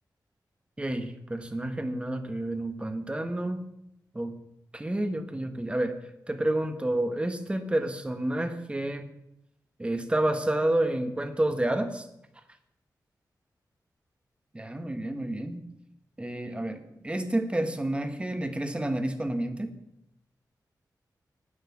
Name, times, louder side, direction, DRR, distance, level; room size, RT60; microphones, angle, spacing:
voice 1, 0.8-3.7 4.1-4.4 4.7-5.9 6.3-9.1 9.8-12.1 14.5-15.6 16.2-19.7, right 1 dB, 15° right, 7 dB, 1.2 m, -29 dB
9.9 x 9.3 x 7.1 m, 0.82 s
wide cardioid pair, 125°, 7 cm